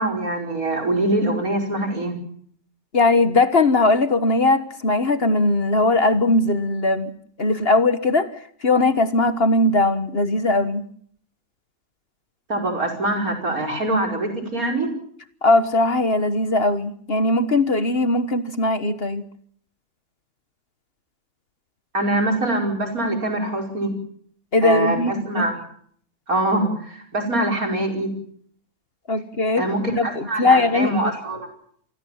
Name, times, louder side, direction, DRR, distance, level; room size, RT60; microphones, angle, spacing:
voice 1, 0.0-2.1 12.5-14.9 21.9-23.9 24.6-25.6 26.3-28.1 29.6-31.5, right 1 dB, 70° right, 3 dB, 5.7 m, -23 dB
voice 2, 2.9-7.1 7.4-8.3 8.6-10.8 15.4-19.2 24.5-25.5 29.1-29.7 30.0-31.1, left 2 dB, 40° left, 11 dB, 1.5 m, -19 dB
28.0 x 20.5 x 7.2 m, 0.63 s
omnidirectional pair, 1.6 m